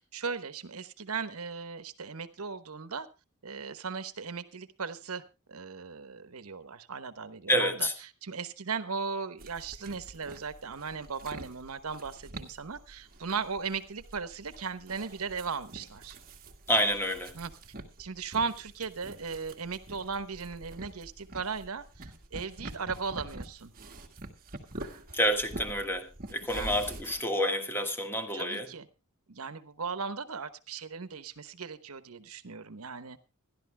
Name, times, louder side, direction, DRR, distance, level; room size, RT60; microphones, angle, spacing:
voice 1, 0.1-3.1 3.4-5.2 5.5-16.2 17.3-17.5 18.0-23.7 26.4-26.8 28.3-28.9 29.3-33.2, right 5 dB, 80° right, 1.1 m, -37 dB
voice 2, 7.5-7.9 16.7-17.3 25.1-28.7, equal, 10° left, 1.5 m, -28 dB
sound 1, 9.4-27.2, right 2 dB, 40° right, 1.8 m, -46 dB
25.5 x 11.5 x 2.2 m
head